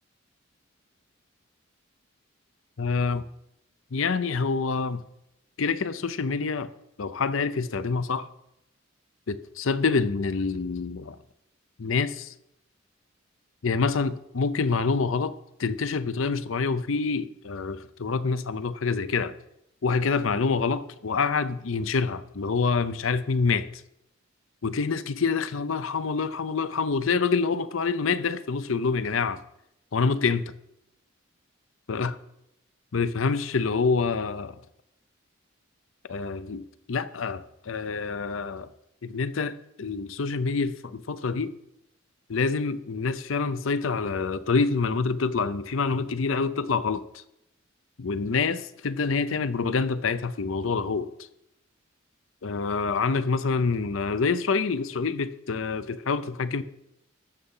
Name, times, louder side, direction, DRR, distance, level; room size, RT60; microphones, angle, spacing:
voice 1, 2.8-3.2 3.9-5.0 5.6-6.7 7.0-8.3 9.3-11.2 11.8-12.3 13.6-19.3 19.8-23.7 24.6-29.4 29.9-30.5 31.9-32.2 32.9-34.6 36.1-38.7 39.0-41.5 42.3-47.2 48.0-51.1 52.4-56.6, left 4 dB, 80° left, 0.6 m, -26 dB
13.5 x 7.0 x 5.6 m
head